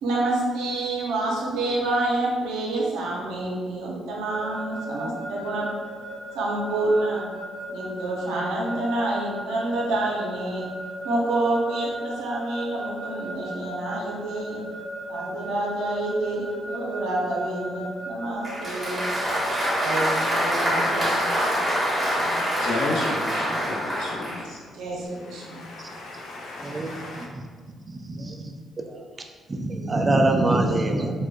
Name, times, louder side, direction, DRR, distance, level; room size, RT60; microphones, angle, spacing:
voice 1, 0.0-5.7 6.3-7.2 7.7-10.6 11.0-14.6 15.1-19.0 19.8-21.2 22.1-22.5 24.4-24.5 24.7-25.6, right 2 dB, 90° right, -3 dB, 0.7 m, -28 dB
Keyboard (musical) / Alarm, 4.3-20.9, right 1 dB, 55° left, 1.3 m, -36 dB
Applause, 18.4-24.5, equal, 15° right, 1.3 m, -25 dB
voice 2, 22.6-24.6 25.4-27.2, left 2 dB, 85° left, -3 dB, 0.7 m, -33 dB
voice 3, 28.1-28.5 29.5-31.1, right 2 dB, 30° right, 4 dB, 0.4 m, -23 dB
4.3 x 2.3 x 2.3 m, 1.5 s
cardioid pair, 90°, 0 cm